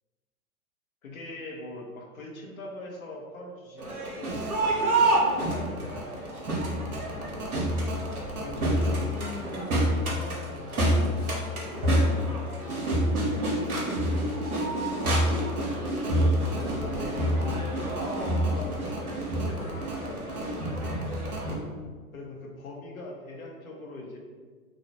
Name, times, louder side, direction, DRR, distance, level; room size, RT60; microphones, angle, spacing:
voice 1, 1.0-6.3 7.2-7.7 8.2-20.4 22.1-24.2, left 2 dB, 65° left, 0 dB, 0.8 m, -42 dB
Crowd, 3.8-21.5, right 1 dB, 75° right, 0.9 m, -27 dB
3.1 x 2.3 x 2.8 m, 1.5 s
figure-of-eight pair, 105°, 44 cm